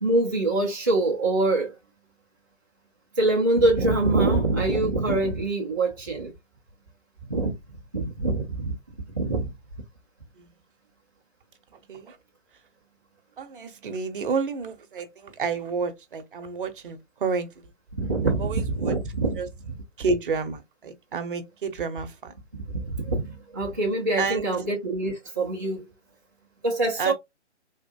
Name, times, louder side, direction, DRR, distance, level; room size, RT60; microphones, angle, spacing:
voice 1, 0.0-1.7 3.2-6.3 7.3-7.5 7.9-8.8 9.1-9.5 18.0-19.4 22.7-25.8 26.6-27.1, right 2 dB, 20° right, 0.4 m, -24 dB
voice 2, 11.7-12.2 13.4-17.5 18.4-18.9 19.4-19.5 20.0-22.3 24.2-24.7 27.0-27.1, right 4 dB, 45° right, 0.7 m, -30 dB
3.5 x 2.4 x 2.2 m
figure-of-eight pair, 135°, 36 cm